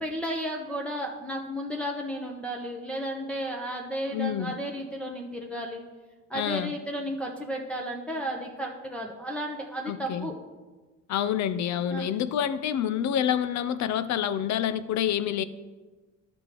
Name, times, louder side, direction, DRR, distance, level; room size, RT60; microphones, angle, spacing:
voice 1, 0.0-5.8 6.3-10.3 11.9-12.1, equal, 5° left, -1 dB, 0.8 m, -33 dB
voice 2, 4.1-4.5 6.3-6.7 9.9-10.3 11.1-15.4, left 9 dB, 65° left, 14 dB, 0.5 m, -27 dB
12.0 x 5.2 x 2.9 m, 1.3 s
cardioid pair, 90°, 30 cm